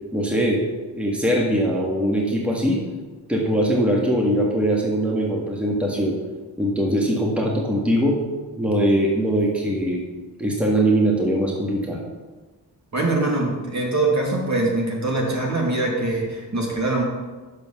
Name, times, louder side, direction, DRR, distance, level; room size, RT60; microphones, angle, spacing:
voice 1, 0.1-0.6 0.9-2.8 3.3-6.1 6.6-8.2 8.6-10.0 10.4-12.0, right 1 dB, 5° right, -2 dB, 1.8 m, -21 dB
voice 2, 12.9-17.0, right 2 dB, 40° right, -2 dB, 2.5 m, -23 dB
6.3 x 5.3 x 6.9 m, 1.3 s
cardioid pair, 50°, 41 cm